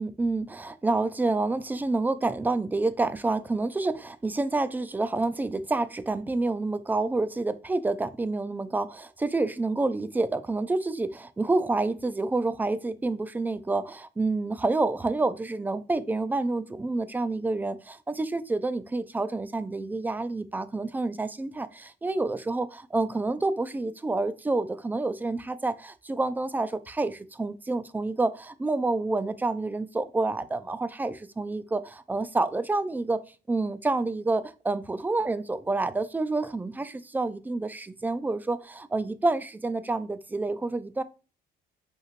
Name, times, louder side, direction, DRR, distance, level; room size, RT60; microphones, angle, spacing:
voice 1, 0.0-33.2 33.5-41.0, right 2 dB, 10° right, 0.3 m, -28 dB
5.3 x 3.1 x 2.5 m
cardioid pair, 110°, 17 cm